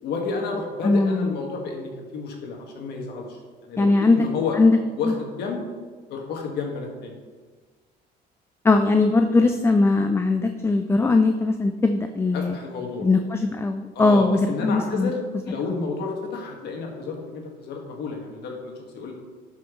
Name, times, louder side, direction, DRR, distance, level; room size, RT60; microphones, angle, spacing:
voice 1, 0.0-4.6 5.0-5.6 6.1-7.2 9.3-9.4 12.3-13.1 14.0-19.1, left 4 dB, 75° left, 1 dB, 1.8 m, -31 dB
voice 2, 0.8-1.3 3.8-4.2 4.5-5.1 8.6-12.6 13.0-15.1, left 3 dB, 15° left, 7 dB, 0.4 m, -20 dB
11.5 x 5.9 x 3.2 m, 1.4 s
cardioid pair, 110°, 17 cm